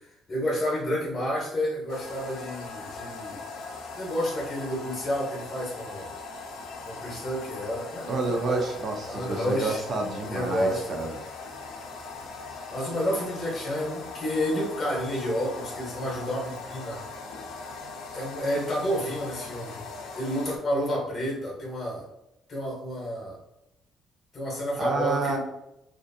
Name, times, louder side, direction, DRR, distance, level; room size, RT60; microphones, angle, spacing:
voice 1, 0.0-3.4 3.9-6.1 6.9-8.7 9.1-9.8 10.3-11.2 12.7-17.0 18.1-19.8 20.1-22.1 22.5-23.4 24.3-25.4, equal, 25° left, -3 dB, 0.8 m, -30 dB
sound 1, 1.9-20.6, left 4 dB, 85° left, 0.5 m, -40 dB
voice 2, 8.1-11.1 24.8-25.4, right 3 dB, 40° right, 2 dB, 0.4 m, -29 dB
2.4 x 2.4 x 2.5 m, 0.87 s
cardioid pair, 150°, 0 cm